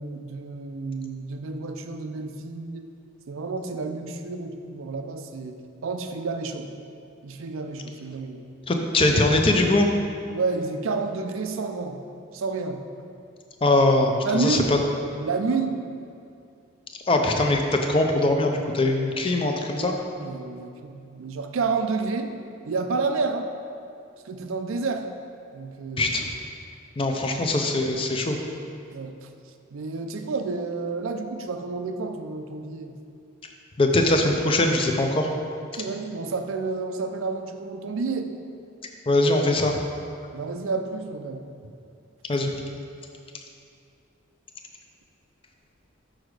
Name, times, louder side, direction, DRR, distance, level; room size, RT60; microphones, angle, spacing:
voice 1, 0.0-2.9 3.3-6.7 7.2-8.4 10.3-12.0 12.3-12.8 14.2-14.7 15.2-15.8 19.8-22.3 22.7-23.5 24.3-25.1 25.5-26.4 28.9-29.2 29.7-32.9 35.7-38.3 40.3-41.4, right 4 dB, 70° right, 6 dB, 0.5 m, -30 dB
voice 2, 8.7-9.9 13.6-14.6 17.1-19.9 26.0-26.3 27.0-28.4 33.8-35.3 39.1-39.7 42.3-42.5, left 2 dB, 25° left, 3 dB, 0.5 m, -21 dB
6.4 x 4.9 x 4.8 m, 2.4 s
head